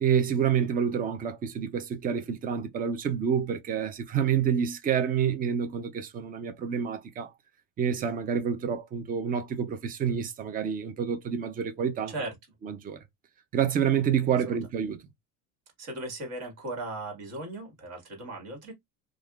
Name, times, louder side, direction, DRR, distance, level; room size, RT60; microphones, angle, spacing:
voice 1, 0.0-7.3 7.8-12.1 12.6-13.0 13.5-15.0, right 7 dB, 25° right, 0.5 m, -28 dB
voice 2, 15.8-18.7, right 2 dB, 50° right, 1.7 m, -37 dB
3.4 x 2.4 x 2.4 m
cardioid pair, 140°, 33 cm